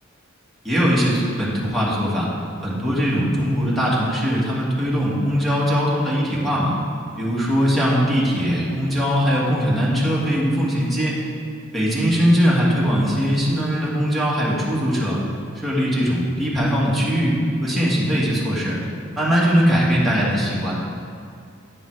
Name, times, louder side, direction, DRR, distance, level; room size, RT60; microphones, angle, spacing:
voice 1, 0.6-2.3 2.6-6.7 7.2-11.2 11.7-15.2 15.6-18.8 19.2-20.8, equal, ahead, -7 dB, 1.7 m, -20 dB
9.8 x 5.5 x 4.7 m, 2.4 s
head